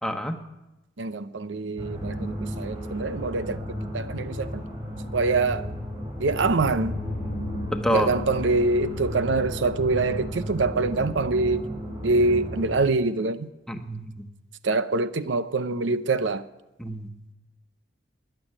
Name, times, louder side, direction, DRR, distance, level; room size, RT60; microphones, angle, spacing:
voice 1, 0.0-0.4 7.7-8.1 13.7-14.3 16.8-17.1, equal, 5° left, 1.1 m, -27 dB
voice 2, 1.0-4.6 5.1-5.7 6.2-6.9 7.9-11.6 12.0-13.5 14.6-16.4, right 3 dB, 90° right, 0.7 m, -25 dB
sound 1, 1.8-12.7, equal, 25° right, 5.5 m, -34 dB
sound 2, 6.2-10.6 11.0-11.1, left 4 dB, 55° left, 0.5 m, -39 dB
20.5 x 7.1 x 9.7 m
head